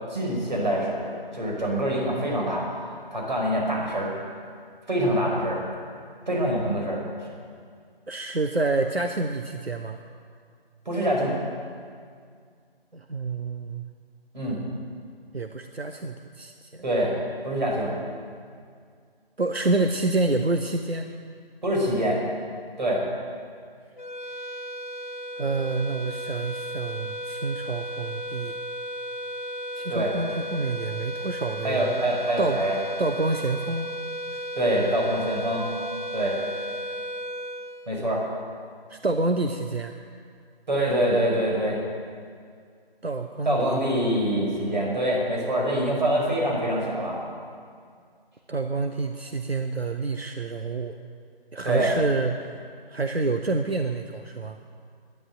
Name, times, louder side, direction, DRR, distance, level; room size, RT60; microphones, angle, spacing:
voice 1, 0.1-4.1 4.9-5.6 6.3-7.0 10.8-11.3 14.3-14.6 16.8-17.2 17.4-17.9 21.6-22.2 22.8-23.0 29.9-30.1 31.6-32.7 34.6-35.7 36.1-36.4 37.9-38.2 40.7-41.8 43.4-47.2 51.6-51.9, right 1 dB, 50° right, -2 dB, 5.1 m, -25 dB
voice 2, 8.1-10.0 12.9-13.9 15.3-16.9 19.4-21.1 25.4-28.6 29.7-31.9 32.4-32.6 33.0-33.9 34.3-34.5 38.9-39.9 43.0-43.9 48.5-51.0 51.5-52.5 52.9-54.6, right 3 dB, 85° right, 5 dB, 1.0 m, -28 dB
sound 1, 24.0-38.5, equal, 50° left, 0.7 m, -35 dB
12.5 x 11.0 x 9.1 m, 2.2 s
figure-of-eight pair, 160°, 30 cm